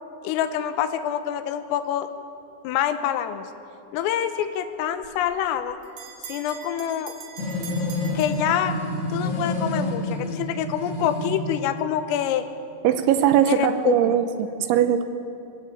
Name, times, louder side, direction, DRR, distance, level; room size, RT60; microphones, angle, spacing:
voice 1, 0.2-2.1 2.7-3.5 3.9-5.8 6.3-7.1 8.2-8.8 9.1-12.5 13.5-14.2, left 10 dB, 85° left, 9 dB, 3.7 m, -26 dB
Bell, 5.0-9.1, right 7 dB, 55° right, 3.4 m, -43 dB
sound 1, 7.4-11.4, left 2 dB, 55° left, 6.1 m, -28 dB
voice 2, 12.8-14.2 14.7-15.0, right 10 dB, 80° right, 10 dB, 3.0 m, -19 dB
25.0 x 17.0 x 8.4 m, 2.6 s
omnidirectional pair, 5.8 m